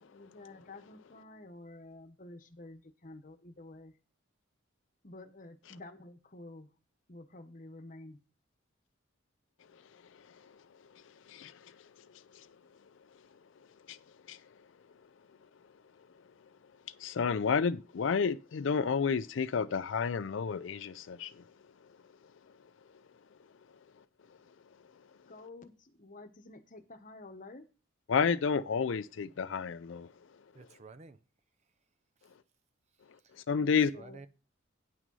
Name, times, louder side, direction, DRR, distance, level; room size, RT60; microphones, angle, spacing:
voice 1, 0.0-3.9 5.0-6.7 7.1-8.2 25.3-27.7 33.9-34.2, left 2 dB, 40° left, 1.1 m, -50 dB
voice 2, 11.3-11.7 13.9-14.0 14.3-14.4 17.0-21.4 28.1-30.1 33.5-33.9, left 6 dB, 65° left, 0.4 m, -30 dB
voice 3, 30.5-31.2 33.2-33.3 33.6-34.3, right 3 dB, 35° right, 0.6 m, -52 dB
9.7 x 6.1 x 5.4 m
head